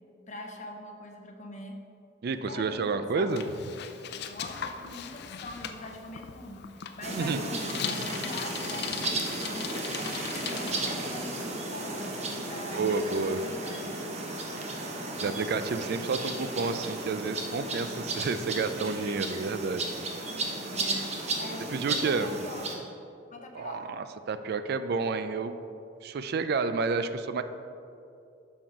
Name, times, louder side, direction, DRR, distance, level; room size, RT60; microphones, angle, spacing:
voice 1, 0.3-1.8 2.5-3.3 4.3-9.8 10.4-13.9 20.7-21.1 21.4-22.8 23.3-24.0, left 1 dB, 40° left, 3 dB, 0.9 m, -42 dB
voice 2, 2.2-3.4 7.2-7.4 12.7-13.4 14.5-14.6 15.2-19.9 21.7-22.3 23.5-25.6 26.0-27.4, right 4 dB, 60° right, 11 dB, 0.4 m, -30 dB
Bicycle, 3.3-10.8, left 8 dB, 60° left, 0.4 m, -39 dB
sound 1, 7.0-22.7, right 2 dB, 35° right, 1.0 m, -34 dB
7.8 x 6.2 x 4.8 m, 2.6 s
head